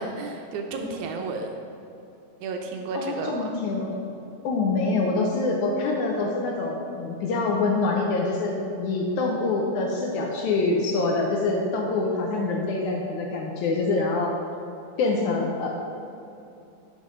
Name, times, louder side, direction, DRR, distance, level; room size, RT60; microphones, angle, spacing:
voice 1, 0.0-1.5 2.4-3.5, right 3 dB, 75° right, 3 dB, 2.0 m, -32 dB
voice 2, 2.9-4.0 4.4-14.3 15.0-15.7, left 3 dB, 75° left, 0 dB, 2.0 m, -25 dB
9.8 x 5.5 x 5.0 m, 2.7 s
omnidirectional pair, 3.8 m